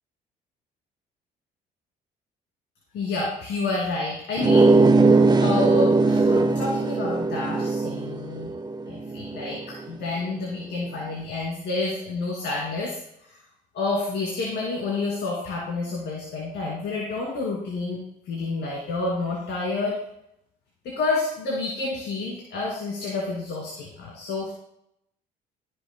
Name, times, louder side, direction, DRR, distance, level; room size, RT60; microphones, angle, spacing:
voice 1, 2.9-8.5 8.9-13.0 13.7-18.0 18.3-20.0 20.8-24.5, left 3 dB, 65° left, -3 dB, 2.5 m, -29 dB
sound 1, 4.4-9.7, right 3 dB, 20° right, 0.8 m, -20 dB
18.5 x 7.1 x 2.2 m, 0.77 s
hypercardioid pair, 60°, 19 cm